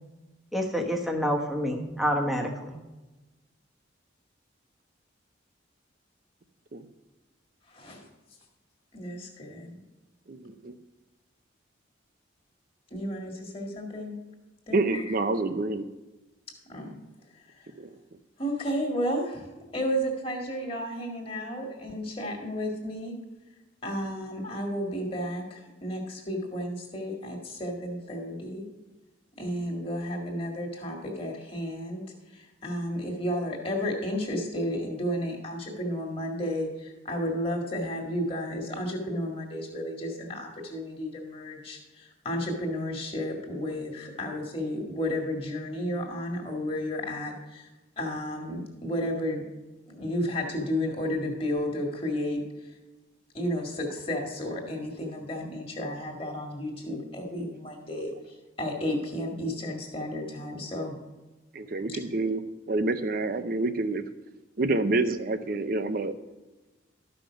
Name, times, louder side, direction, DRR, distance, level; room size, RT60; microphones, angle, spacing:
voice 1, 0.5-2.8, equal, ahead, 1 dB, 1.0 m, -28 dB
voice 2, 7.7-8.1 8.9-9.8 12.9-14.2 14.7-15.0 16.7-16.9 17.4-17.7 18.4-23.2 23.8-28.6 29.4-32.0 32.3-47.7 48.0-49.5 49.9-52.7 53.3-60.9 61.9-62.0, equal, 30° left, 1 dB, 1.9 m, -32 dB
voice 3, 10.3-10.7 14.7-15.8 17.8-17.9 61.5-62.4 62.7-64.0 64.6-66.1, right 2 dB, 45° right, 11 dB, 0.6 m, -27 dB
13.0 x 5.8 x 5.0 m, 1.1 s
head